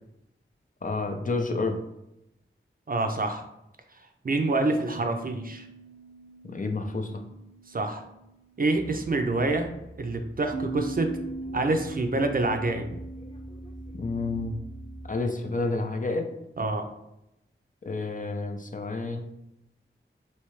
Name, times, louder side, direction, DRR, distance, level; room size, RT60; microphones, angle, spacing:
voice 1, 0.8-1.8 6.4-7.2 13.9-14.6 15.1-16.3 17.8-19.2, left 3 dB, 40° left, 4 dB, 0.4 m, -29 dB
voice 2, 2.9-3.4 4.2-5.7 7.7-8.0 8.6-9.7 10.0-11.1 11.5-12.9 16.6-16.8, right 2 dB, 45° right, 5 dB, 0.4 m, -26 dB
sound 1, 4.5-9.1 10.5-15.8, right 2 dB, 85° right, 0.8 m, -42 dB
sound 2, 8.7-15.1, right 1 dB, 20° left, 0.8 m, -45 dB
3.2 x 2.7 x 3.0 m, 0.85 s
wide cardioid pair, 55°, 21 cm